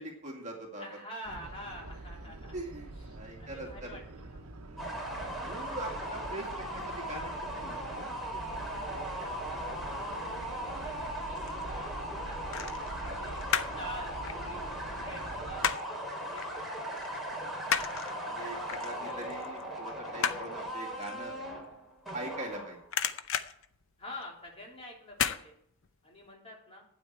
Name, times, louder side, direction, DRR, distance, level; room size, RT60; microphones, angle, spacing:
voice 1, 0.0-0.9 2.5-4.0 4.7-5.0 5.4-8.4 13.0-13.2 18.2-21.4 22.1-22.8, right 1 dB, 35° right, 0 dB, 2.3 m, -42 dB
voice 2, 0.8-2.5 3.1-4.5 8.9-12.6 13.2-16.7 18.9-19.2 24.0-25.5 26.0-26.8, left 1 dB, 30° left, -2 dB, 3.5 m, -48 dB
sound 1, 1.3-15.8, right 2 dB, 90° right, 0.9 m, -45 dB
sound 2, 4.8-22.9, equal, ahead, 3.5 m, -38 dB
sound 3, 11.0-11.6 12.5-13.9 14.1-16.0 16.4-16.6 16.9-22.5 22.8-24.5 25.1-25.4 25.8-25.9, left 8 dB, 65° left, 0.7 m, -34 dB
12.5 x 9.3 x 4.7 m, 0.69 s
head